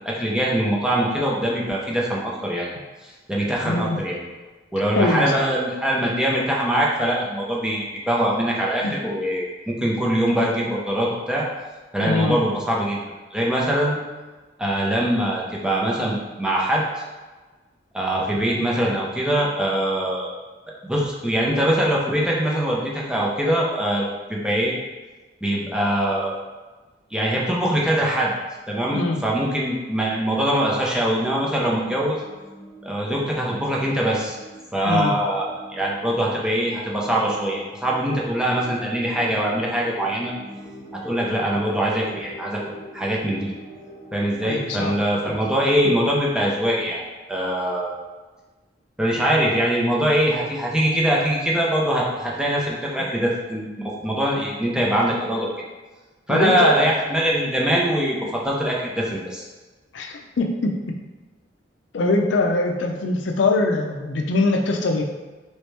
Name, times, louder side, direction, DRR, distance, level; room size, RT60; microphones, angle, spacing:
voice 1, 0.0-2.7 3.0-4.2 4.7-11.5 11.9-13.0 13.3-14.0 14.6-16.8 17.9-20.3 20.8-24.7 25.4-26.3 27.1-28.3 28.7-32.2 32.8-34.4 34.7-40.3 41.0-42.6 42.9-43.5 44.1-47.0 47.3-47.9 49.0-55.5 56.3-59.4, right 1 dB, 5° right, -4 dB, 0.6 m, -23 dB
voice 2, 3.6-4.0 4.9-5.3 8.8-8.9 12.0-12.4 28.9-29.2 34.8-35.1 44.4-45.0 56.3-56.8 59.9-60.7 61.9-65.0, left 3 dB, 75° left, 3 dB, 0.5 m, -22 dB
sound 1, 31.1-45.4, right 1 dB, 40° left, 0.9 m, -42 dB
3.2 x 2.9 x 3.3 m, 1.3 s
head